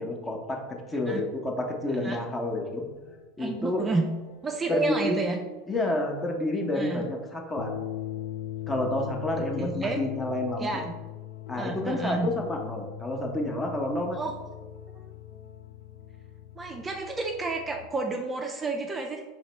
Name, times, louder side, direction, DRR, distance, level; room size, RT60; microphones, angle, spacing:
voice 1, 0.0-2.8 3.4-3.8 4.7-5.2 5.7-7.8 8.7-10.8 11.5-14.2, left 1 dB, 20° left, 1 dB, 0.8 m, -29 dB
sound 1, 3.0-17.9, left 12 dB, 70° left, 0.4 m, -41 dB
voice 2, 3.4-4.0 4.4-5.4 6.8-7.1 9.6-10.0 10.6-10.9 11.6-12.3 14.1-14.3 14.9-15.1 16.6-19.2, right 3 dB, 20° right, 2 dB, 0.4 m, -30 dB
4.2 x 2.9 x 3.1 m, 1.2 s
hypercardioid pair, 95°, 0 cm